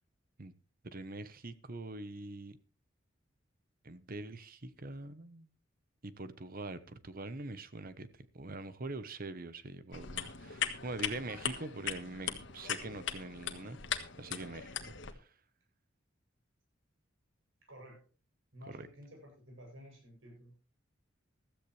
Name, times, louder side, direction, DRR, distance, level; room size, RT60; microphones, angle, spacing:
voice 1, 0.8-2.6 3.8-5.5 6.0-8.1 8.3-13.8 14.2-15.3 18.7-18.9, right 2 dB, 45° right, 13 dB, 1.1 m, -44 dB
sound 1, 9.9-15.1, left 8 dB, 65° left, 1.5 m, -39 dB
voice 2, 17.7-18.0 18.5-20.5, equal, 75° right, 1 dB, 7.9 m, -52 dB
15.5 x 13.5 x 3.3 m, 0.34 s
head